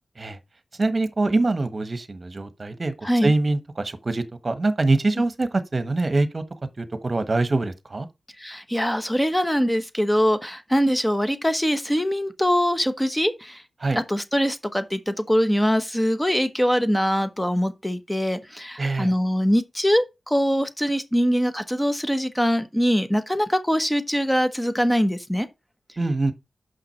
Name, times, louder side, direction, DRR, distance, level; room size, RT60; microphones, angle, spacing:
voice 1, 0.8-6.4 6.8-8.1 13.8-14.0 18.8-19.1 26.0-26.3, right 2 dB, 40° right, 1.3 m, -24 dB
voice 2, 8.4-13.6 13.9-25.5, equal, 10° left, 1.2 m, -23 dB
6.3 x 5.7 x 4.5 m
cardioid pair, 70°, 0 cm